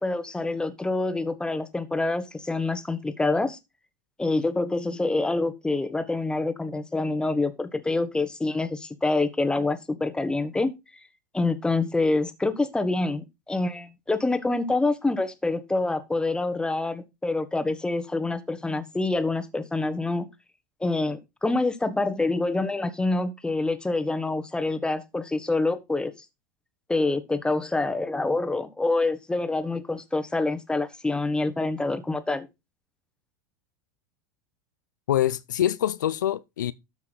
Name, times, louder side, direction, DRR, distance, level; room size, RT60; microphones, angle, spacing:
voice 1, 0.0-3.6 4.2-10.7 11.3-20.3 20.8-26.1 26.9-32.5, left 2 dB, 10° left, 1.5 m, -26 dB
voice 2, 35.1-36.7, left 11 dB, 80° left, 0.6 m, -25 dB
12.5 x 5.9 x 4.1 m
hypercardioid pair, 90°, 10 cm